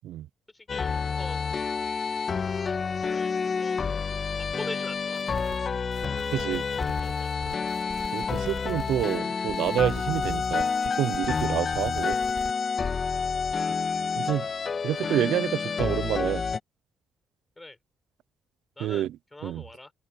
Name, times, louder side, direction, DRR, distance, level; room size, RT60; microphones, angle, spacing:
voice 1, 0.5-0.9 1.2-1.6 3.1-3.9 4.6-5.6 6.3-7.6 17.6-17.8 18.8-19.9, left 2 dB, 15° left, 7.5 m, -43 dB
sound 1, 0.7-16.6, left 5 dB, 40° left, 2.5 m, -29 dB
sound 2, 5.1-5.6 5.9-9.2 9.5-12.5, right 4 dB, 35° right, 4.1 m, -43 dB
voice 2, 6.3-6.6 8.1-12.2 14.2-14.5 14.8-16.4 18.8-19.1 19.4-19.6, right 12 dB, 80° right, 0.6 m, -28 dB
cardioid pair, 90°, 0 cm